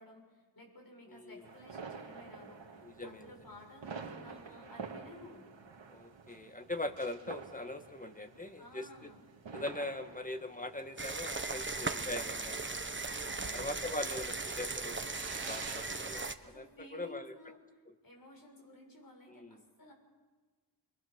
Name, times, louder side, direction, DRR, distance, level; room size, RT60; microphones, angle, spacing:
voice 1, 0.0-5.5 8.6-9.2 13.2-13.7 16.4-17.6 18.0-19.9, left 2 dB, 50° left, 2 dB, 7.1 m, -54 dB
voice 2, 1.1-1.4 2.8-3.2 5.9-8.9 9.5-12.8 13.5-15.1 15.4-17.3 19.3-19.6, left 2 dB, 20° left, 7 dB, 1.8 m, -41 dB
sound 1, 1.4-16.2, right 5 dB, 80° right, 2.2 m, -50 dB
sound 2, 11.0-16.3, right 3 dB, 25° right, 1.3 m, -38 dB
28.0 x 23.0 x 6.5 m, 1.3 s
wide cardioid pair, 75°, 44 cm